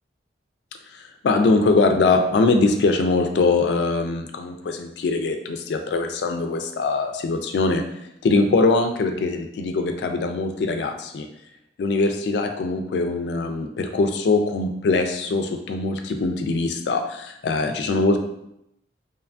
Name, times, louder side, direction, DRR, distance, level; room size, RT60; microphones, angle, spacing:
voice 1, 1.2-7.8 8.2-11.3 11.8-18.2, left 3 dB, 70° left, 6 dB, 0.3 m, -22 dB
2.7 x 2.3 x 2.5 m, 0.79 s
head